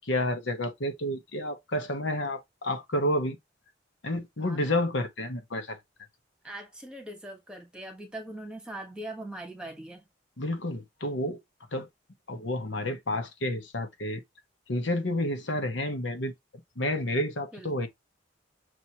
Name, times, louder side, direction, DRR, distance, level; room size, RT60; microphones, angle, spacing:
voice 1, 0.0-3.4 4.0-5.8 10.4-11.4 11.7-11.9 12.3-14.2 14.7-16.3 16.8-17.9, left 1 dB, 75° left, 1.1 m, -30 dB
voice 2, 4.4-4.8 6.4-10.0 17.5-17.9, right 1 dB, 5° right, 1.2 m, -41 dB
6.1 x 2.9 x 2.8 m
head